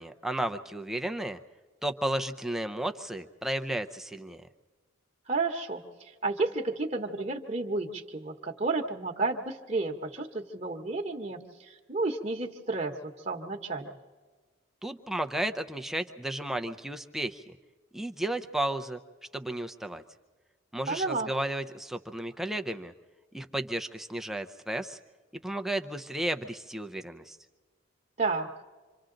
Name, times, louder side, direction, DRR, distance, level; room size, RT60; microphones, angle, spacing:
voice 1, 0.0-1.4 1.8-4.4 14.8-17.5 17.9-19.0 19.3-20.0 20.7-22.9 23.3-25.0 25.3-27.4, right 1 dB, ahead, 6 dB, 0.6 m, -33 dB
voice 2, 5.3-13.9 20.9-21.3 28.2-28.5, right 3 dB, 35° right, 2 dB, 1.2 m, -32 dB
27.5 x 25.5 x 3.9 m, 1.4 s
head